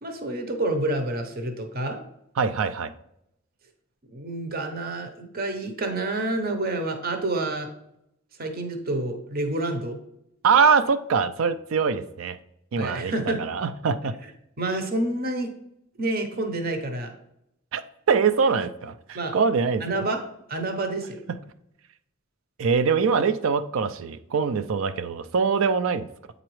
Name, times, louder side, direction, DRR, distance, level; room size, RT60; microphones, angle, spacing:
voice 1, 0.0-2.0 4.1-7.7 8.4-10.0 12.7-13.5 14.6-15.5 16.0-17.1 19.1-19.3 19.8-20.2 20.5-21.2, right 2 dB, 50° right, 5 dB, 0.8 m, -28 dB
voice 2, 2.4-2.9 10.4-12.4 12.7-14.1 17.7-17.8 18.1-19.8 21.3-21.4 22.6-26.1, right 5 dB, 80° right, 11 dB, 0.4 m, -23 dB
8.7 x 3.9 x 3.1 m, 0.80 s
head